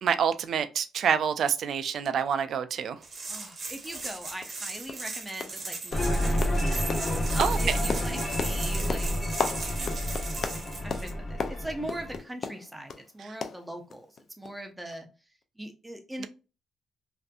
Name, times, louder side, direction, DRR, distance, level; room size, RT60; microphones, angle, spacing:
voice 1, 0.0-3.0 7.4-7.8 16.2-16.3, right 7 dB, 65° right, 0.3 m, -27 dB
sound 1, 3.0-11.1, right 3 dB, 40° right, 0.8 m, -38 dB
voice 2, 3.3-6.9 7.3-9.1 10.8-14.1 14.4-15.1 15.6-16.3, right 1 dB, 10° right, 0.6 m, -41 dB
sound 2, 4.4-4.6 4.9-5.1 5.4-5.7 5.9-13.1 13.4-14.2 14.4-14.6 14.9-15.0, left 5 dB, 55° left, 0.3 m, -36 dB
sound 3, 5.9-12.2, equal, 40° left, 1.1 m, -29 dB
2.5 x 2.5 x 2.3 m
cardioid pair, 90°, 0 cm